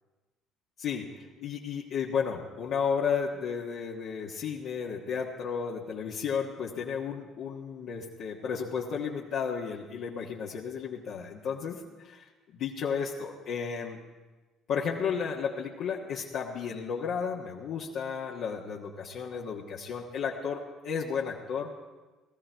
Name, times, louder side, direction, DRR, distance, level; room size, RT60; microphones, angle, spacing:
voice 1, 0.8-14.0 14.7-21.7, left 6 dB, 70° left, -4 dB, 1.4 m, -33 dB
17.5 x 14.0 x 4.6 m, 1.2 s
supercardioid pair, 75°, 0 cm